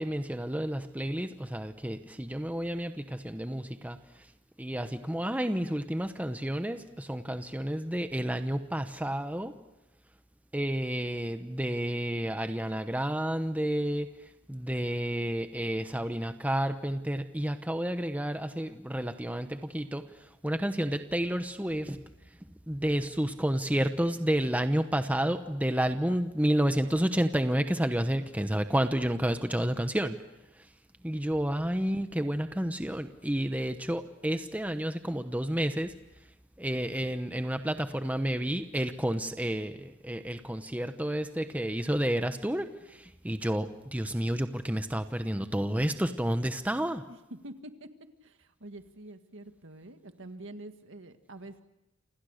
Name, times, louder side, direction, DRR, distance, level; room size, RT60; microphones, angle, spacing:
voice 1, 0.0-4.0 4.6-9.5 10.5-14.1 14.5-20.0 20.4-22.0 22.7-30.2 31.0-35.9 36.6-47.0, right 1 dB, 5° right, 8 dB, 0.9 m, -30 dB
voice 2, 47.1-47.9 48.2-51.6, right 1 dB, 65° right, 7 dB, 1.9 m, -46 dB
29.0 x 27.0 x 6.5 m, 0.90 s
head